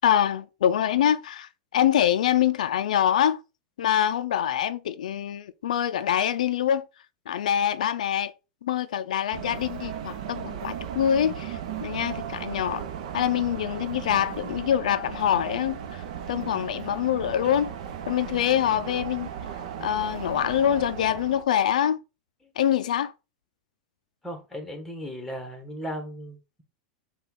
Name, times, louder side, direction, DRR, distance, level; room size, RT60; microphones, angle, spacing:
voice 1, 0.0-3.4 3.8-6.9 7.3-8.3 8.6-12.9 13.1-17.7 18.1-19.3 19.8-22.0 22.6-23.1, left 10 dB, 85° left, 0.3 m, -25 dB
sound 1, 9.3-21.4, right 8 dB, 70° right, 0.7 m, -36 dB
voice 2, 24.2-26.6, equal, 5° left, 1.2 m, -36 dB
5.4 x 2.3 x 3.8 m
supercardioid pair, 125°, 4 cm